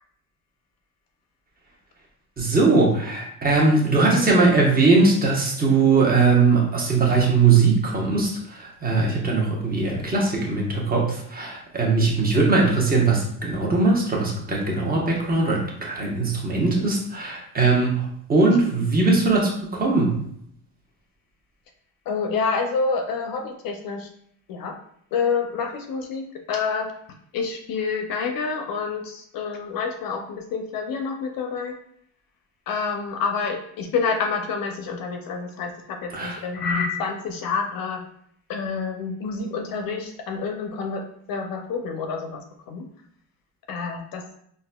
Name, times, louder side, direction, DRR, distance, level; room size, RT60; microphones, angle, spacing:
voice 1, 2.4-20.2 36.1-36.4, right 3 dB, 20° right, -2 dB, 1.0 m, -20 dB
voice 2, 22.1-24.1 24.5-24.8 25.1-26.9 27.3-31.8 32.7-38.0 38.5-41.0 41.3-42.9 43.7-44.2, left 5 dB, 55° left, 4 dB, 0.5 m, -28 dB
3.9 x 2.5 x 2.2 m, 0.69 s
cardioid pair, 95°, 41 cm